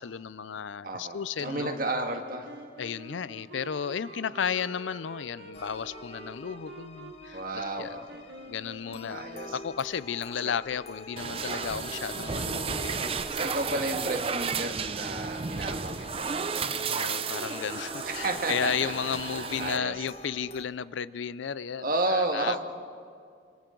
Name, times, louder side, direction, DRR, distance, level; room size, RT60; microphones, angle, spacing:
voice 1, 0.0-1.8 2.8-7.9 8.5-9.3 9.5-13.1 16.9-22.6, left 7 dB, 85° left, 17 dB, 0.5 m, -33 dB
voice 2, 0.8-2.5 7.3-8.2 9.1-9.6 11.5-11.7 13.3-16.8 18.1-18.9 19.4-19.9 21.8-22.6, right 2 dB, 50° right, 3 dB, 1.7 m, -32 dB
Wind instrument woodwind instrument, 1.4-10.1, right 1 dB, 85° right, 2.4 m, -47 dB
sound 1, 5.5-20.7, left 2 dB, 35° left, 0.7 m, -47 dB
sound 2, 11.2-19.8, right 5 dB, 30° right, 0.5 m, -33 dB
27.0 x 26.0 x 3.9 m, 2.2 s
head